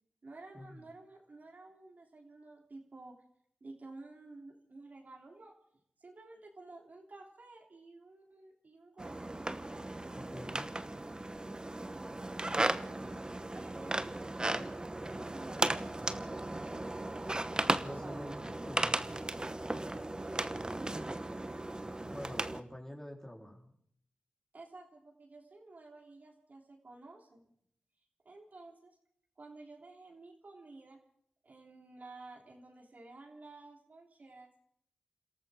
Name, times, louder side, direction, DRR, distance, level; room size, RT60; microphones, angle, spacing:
voice 1, 0.2-3.1 3.6-5.6 6.0-9.4 12.4-13.0 13.5-14.0 14.3-17.4 17.9-18.3 20.2-21.2 24.5-27.4 28.2-29.0 29.4-31.0 31.4-34.6, right 2 dB, 55° right, 0 dB, 3.3 m, -52 dB
sound 1, 9.0-22.6, right 2 dB, 25° right, 1.0 m, -36 dB
voice 2, 10.1-10.7 17.8-19.1 22.1-23.7, equal, 15° left, 0 dB, 3.9 m, -46 dB
29.5 x 13.5 x 3.7 m, 0.66 s
cardioid pair, 45°, 3 cm